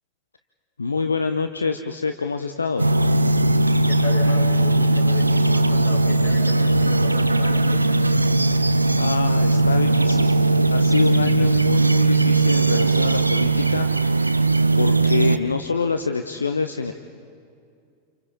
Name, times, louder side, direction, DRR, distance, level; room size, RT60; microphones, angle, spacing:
voice 1, 0.8-2.9 9.0-10.3 10.7-14.3 14.7-16.9, left 4 dB, 75° left, 8 dB, 0.7 m, -26 dB
sound 1, 2.8-15.4, right 2 dB, 85° right, 0.6 m, -19 dB
voice 2, 3.9-8.1, left 1 dB, 45° left, 0 dB, 6.2 m, -35 dB
29.5 x 28.0 x 4.3 m, 2.3 s
figure-of-eight pair, 90°, 0 cm